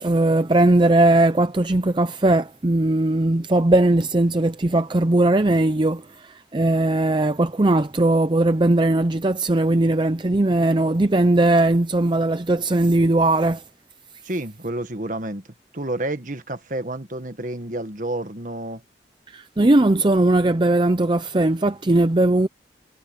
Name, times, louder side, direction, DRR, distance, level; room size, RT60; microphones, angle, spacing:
voice 1, 0.0-13.6 19.3-22.5, right 2 dB, 25° right, 0.6 m, -19 dB
voice 2, 14.2-15.4 15.7-18.8, right 1 dB, 45° right, 1.7 m, -29 dB
head